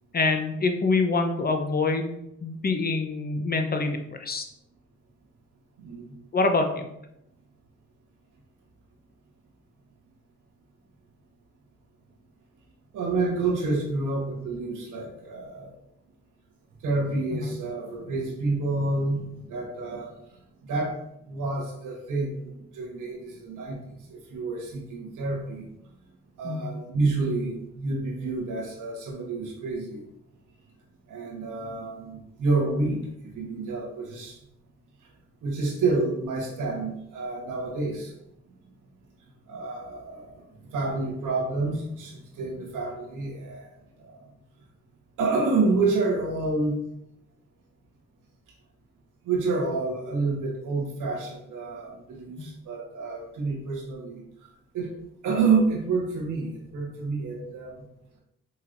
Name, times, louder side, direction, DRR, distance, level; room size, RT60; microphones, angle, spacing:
voice 1, 0.1-4.4 6.3-6.9 17.3-17.4 26.4-26.7 52.4-52.5, left 3 dB, 30° left, 5 dB, 0.7 m, -26 dB
voice 2, 5.8-6.1 12.9-15.7 16.8-20.2 20.6-25.6 26.4-30.0 31.1-33.1 33.3-34.4 35.4-38.1 39.5-44.2 45.2-46.8 49.2-54.2 54.7-54.9 55.2-57.8, right 3 dB, 75° right, -1 dB, 1.3 m, -28 dB
5.5 x 3.1 x 2.6 m, 0.82 s
supercardioid pair, 60°, 31 cm